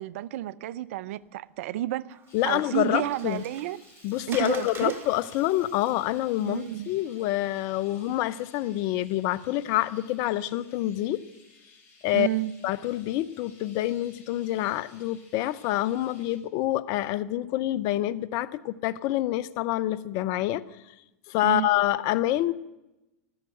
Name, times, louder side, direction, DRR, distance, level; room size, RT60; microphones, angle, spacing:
voice 1, 0.0-2.2 2.5-3.8 4.3-5.0 6.4-6.9 12.1-12.5 21.4-21.7, right 14 dB, 65° right, 0.6 m, -30 dB
Water, 2.1-7.5, right 6 dB, 30° right, 2.1 m, -47 dB
voice 2, 2.3-3.4 4.0-11.2 12.0-12.3 12.6-20.6 21.3-22.5, left 15 dB, 50° left, 0.8 m, -27 dB
Chirp tweet, 2.3-16.4, left 3 dB, 35° left, 6.2 m, -57 dB
13.5 x 13.5 x 7.8 m
hypercardioid pair, 105°, 8 cm